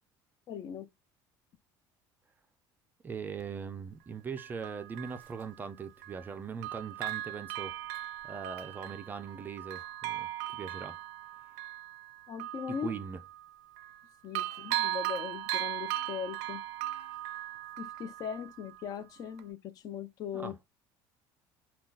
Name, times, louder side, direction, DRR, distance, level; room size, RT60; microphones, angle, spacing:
voice 1, 0.5-0.9 12.3-12.9 14.2-16.6 17.8-20.6, left 7 dB, 40° left, 0.5 m, -39 dB
voice 2, 3.0-7.7 8.2-11.0 12.7-13.2 20.3-20.6, right 6 dB, 20° right, 0.3 m, -40 dB
Bell, 3.4-3.5 4.4-6.3 6.6-14.0 14.3-19.0 19.4-19.5, right 14 dB, 90° right, 0.4 m, -38 dB
3.7 x 2.3 x 3.9 m
cardioid pair, 165°, 10 cm